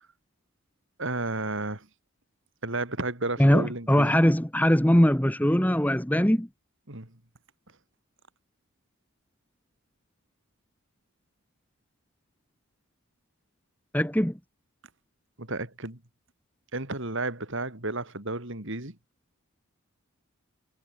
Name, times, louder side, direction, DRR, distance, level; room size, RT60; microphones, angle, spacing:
voice 1, 1.0-1.9 2.6-4.2 6.9-7.1 15.4-16.0 16.7-19.0, right 2 dB, 60° right, 4.0 m, -32 dB
voice 2, 3.4-6.5 13.9-14.4, equal, 5° left, 1.3 m, -21 dB
head